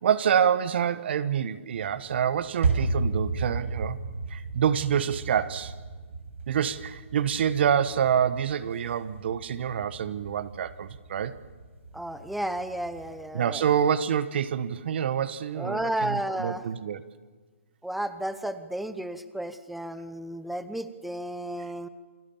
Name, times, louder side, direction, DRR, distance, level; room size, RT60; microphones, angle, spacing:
voice 1, 0.0-4.0 4.3-5.7 6.5-11.3 13.3-17.0, right 8 dB, 55° right, 15 dB, 1.3 m, -27 dB
sound 1, 1.7-13.1, right 3 dB, 70° right, 7.7 m, -34 dB
voice 2, 11.9-13.6 15.6-16.6 17.8-21.9, right 1 dB, ahead, 12 dB, 1.0 m, -33 dB
28.5 x 21.0 x 7.2 m, 1.4 s
hypercardioid pair, 145°, 7 cm